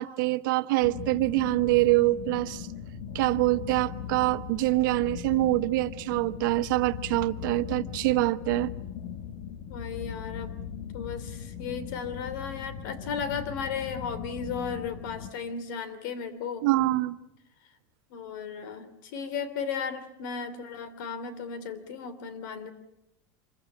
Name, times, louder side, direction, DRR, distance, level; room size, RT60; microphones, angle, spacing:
voice 1, 0.0-2.7 3.1-8.7 16.6-17.2, right 19 dB, 85° right, 1.0 m, -25 dB
sound 1, 0.8-15.3, left 8 dB, 65° left, 1.3 m, -39 dB
voice 2, 9.7-10.5 10.9-16.7 18.1-22.7, left 6 dB, 80° left, 2.9 m, -35 dB
26.0 x 16.0 x 10.0 m
cardioid pair, 160°, 11 cm